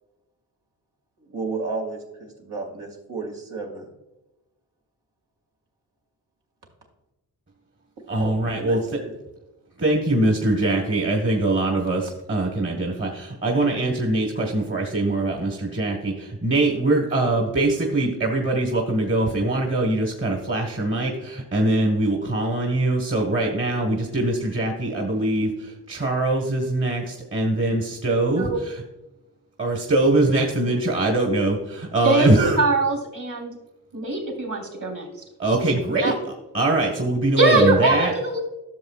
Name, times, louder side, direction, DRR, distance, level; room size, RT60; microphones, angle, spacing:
voice 1, 1.2-3.9 8.2-9.1, right 3 dB, 85° right, 0 dB, 2.2 m, -33 dB
voice 2, 8.1-8.8 9.8-28.8 29.6-32.6 35.4-36.1 36.5-38.1, right 2 dB, 30° right, 1 dB, 1.3 m, -22 dB
voice 3, 32.6-33.5 33.9-35.1 36.0-36.1 37.4-38.4, right 2 dB, 60° right, 1 dB, 3.2 m, -21 dB
12.0 x 6.8 x 2.4 m, 0.98 s
cardioid pair, 65°, 39 cm